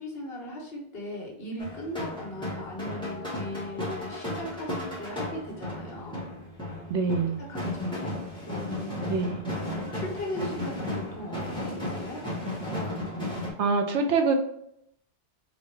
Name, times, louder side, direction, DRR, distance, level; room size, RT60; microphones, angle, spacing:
voice 1, 0.0-6.2 7.5-8.1 8.4-9.2 9.6-12.2, left 1 dB, 60° left, 0 dB, 1.3 m, -38 dB
sound 1, 1.6-13.5, left 1 dB, 5° left, 1.5 m, -34 dB
voice 2, 6.9-7.4 9.1-9.4 13.6-14.3, right 4 dB, 85° right, 5 dB, 1.0 m, -25 dB
4.0 x 3.8 x 3.3 m, 0.73 s
omnidirectional pair, 1.1 m